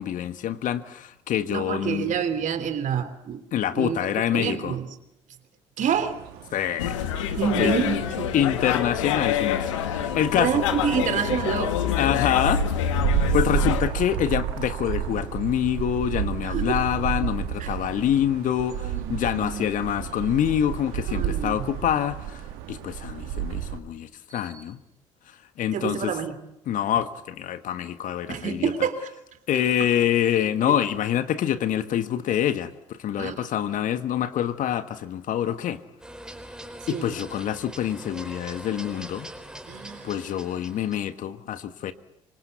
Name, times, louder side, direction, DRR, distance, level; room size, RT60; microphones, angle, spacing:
voice 1, 0.0-2.1 3.5-4.7 6.5-7.0 7.6-7.7 8.3-9.6 9.9-10.6 12.0-12.6 13.3-22.4 22.7-24.8 25.6-26.1 26.7-28.7 29.5-35.8 36.9-39.3 40.0-41.9, left 10 dB, 55° left, 11 dB, 1.6 m, -26 dB
voice 2, 1.5-3.4 3.7-4.9 5.8-6.2 7.4-8.3 10.3-11.8 13.2-13.3 16.4-16.8 17.2-17.3 17.6-17.7 18.8-19.7 21.1-21.7 24.3-24.6 25.7-26.4 28.3-29.1 30.7-30.8 33.2-33.5 36.9-37.1 39.7-40.1, right 8 dB, 55° right, 10 dB, 3.2 m, -28 dB
sound 1, 5.9-23.8, right 11 dB, 70° right, 2.0 m, -32 dB
sound 2, 6.8-13.8, left 9 dB, 80° left, 1.9 m, -26 dB
sound 3, 36.0-41.0, right 1 dB, 5° right, 4.5 m, -42 dB
25.5 x 25.0 x 8.2 m, 0.83 s
hypercardioid pair, 55°, 16 cm